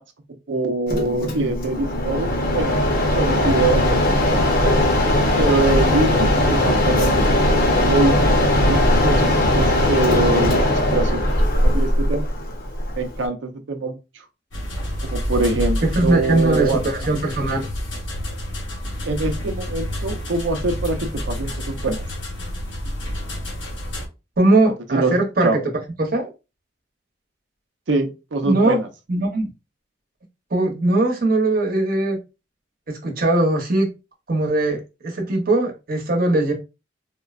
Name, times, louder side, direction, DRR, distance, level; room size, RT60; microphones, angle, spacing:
voice 1, 0.5-2.3 2.5-2.8 3.2-4.0 4.3-4.7 5.4-7.3 7.8-8.2 8.7-11.2 11.5-12.3 13.0-13.9 15.1-16.8 19.0-22.0 24.9-25.6 27.9-28.9, right 3 dB, 80° right, 0.6 m, -24 dB
Mechanisms, 0.9-13.3, left 1 dB, 50° left, 0.7 m, -19 dB
sound 1, 14.5-24.1, equal, 85° left, 0.9 m, -28 dB
voice 2, 15.8-17.7 24.4-25.6 26.0-26.3 28.4-28.8 29.1-29.5 30.5-32.2 32.9-33.9 34.3-36.5, right 2 dB, 50° right, 0.8 m, -20 dB
3.7 x 2.1 x 2.4 m
head